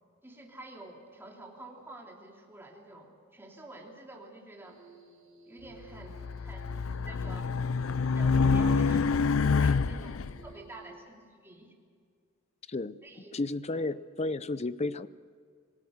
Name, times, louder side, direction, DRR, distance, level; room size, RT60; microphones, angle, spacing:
voice 1, 0.2-4.9 5.5-6.6 6.9-7.5 7.9-11.7 13.0-13.4 13.7-13.8, right 2 dB, 10° right, 0 dB, 3.1 m, -49 dB
sound 1, 4.6-10.9, right 4 dB, 85° right, 5.0 m, -55 dB
Race car auto racing, 5.9-10.3, left 5 dB, 75° left, 0.5 m, -27 dB
voice 2, 13.3-15.1, left 2 dB, 30° left, 16 dB, 0.6 m, -32 dB
26.5 x 18.0 x 6.5 m, 2.1 s
head